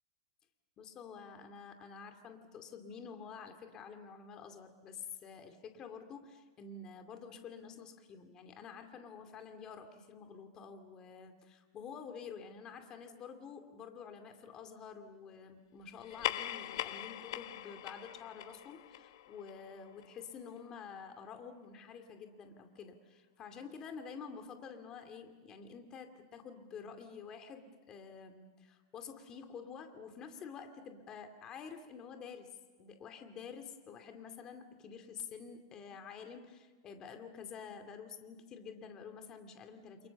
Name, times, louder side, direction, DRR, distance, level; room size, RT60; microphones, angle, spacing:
voice 1, 0.8-32.5 32.8-40.1, left 6 dB, 25° left, 7 dB, 2.5 m, -49 dB
sound 1, 16.0-20.9, left 13 dB, 65° left, 1.3 m, -42 dB
29.0 x 28.5 x 7.1 m, 1.4 s
supercardioid pair, 150°, 3 cm